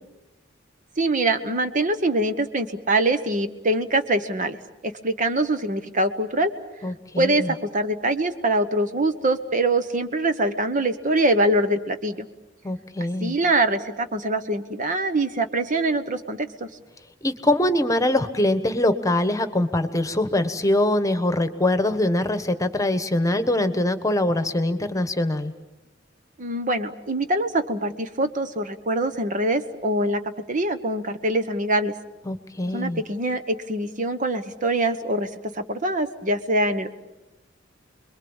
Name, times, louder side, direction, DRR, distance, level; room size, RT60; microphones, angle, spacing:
voice 1, 1.0-4.6 4.8-6.5 7.2-12.3 13.2-16.7 26.4-31.9 32.7-35.3 35.5-36.9, right 1 dB, 40° right, 9 dB, 1.1 m, -24 dB
voice 2, 6.8-7.5 12.6-13.3 17.2-25.5 32.3-33.0, left 1 dB, 15° left, 10 dB, 1.3 m, -23 dB
30.0 x 22.0 x 7.2 m, 0.99 s
head